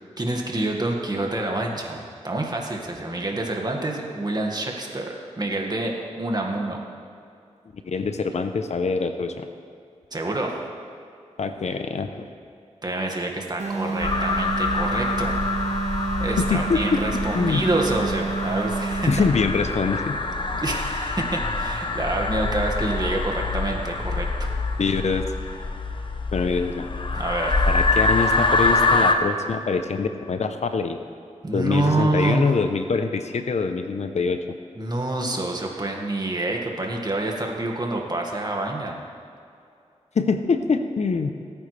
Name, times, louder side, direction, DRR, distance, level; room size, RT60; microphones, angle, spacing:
voice 1, 0.2-6.8 10.1-10.6 12.8-15.3 16.2-19.1 20.6-24.5 27.1-27.7 31.4-32.5 34.8-39.0, right 2 dB, 35° right, 0 dB, 1.8 m, -27 dB
voice 2, 7.8-9.5 11.4-12.3 16.4-17.0 17.3-17.7 19.1-20.2 24.8-25.2 26.3-26.9 27.7-31.0 31.5-34.4 40.1-41.3, left 4 dB, 65° left, 8 dB, 0.8 m, -24 dB
sound 1, 13.6-19.5, right 4 dB, 70° right, 1.7 m, -29 dB
sound 2, 14.0-29.1, left 3 dB, 40° left, 1.0 m, -25 dB
19.0 x 9.0 x 3.4 m, 2.5 s
cardioid pair, 60°, 12 cm